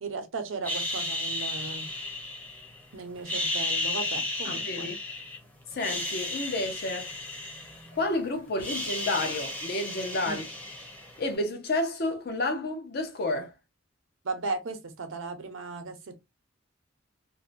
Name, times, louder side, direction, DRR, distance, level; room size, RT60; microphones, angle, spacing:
voice 1, 0.0-1.9 2.9-4.9 10.2-10.5 14.2-16.2, right 3 dB, 90° right, 0.7 m, -36 dB
sound 1, 0.6-2.8 3.2-5.4 5.7-8.1 8.4-11.3, left 2 dB, 10° left, 0.7 m, -33 dB
voice 2, 4.4-5.0 5.7-7.1 8.0-10.4 11.2-13.5, left 2 dB, 55° left, 0.7 m, -30 dB
2.6 x 2.1 x 2.5 m
head